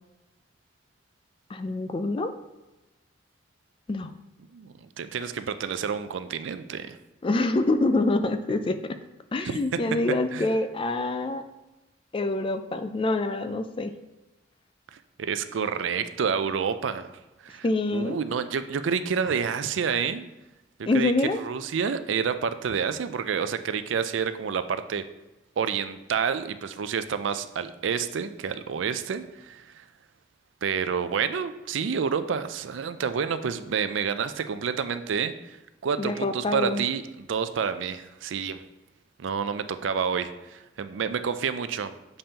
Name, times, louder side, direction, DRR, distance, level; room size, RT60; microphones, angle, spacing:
voice 1, 1.5-2.3 3.9-4.1 7.2-9.0 9.3-11.4 12.1-13.9 17.6-18.2 20.9-21.4 36.0-36.8, left 2 dB, 30° left, 9 dB, 0.4 m, -26 dB
voice 2, 4.5-7.0 9.4-9.6 10.3-10.5 14.9-17.1 17.4-20.2 20.8-25.0 25.6-29.9 30.6-38.6 39.2-42.2, right 6 dB, 85° right, 11 dB, 0.4 m, -29 dB
6.8 x 5.4 x 2.9 m, 1.0 s
head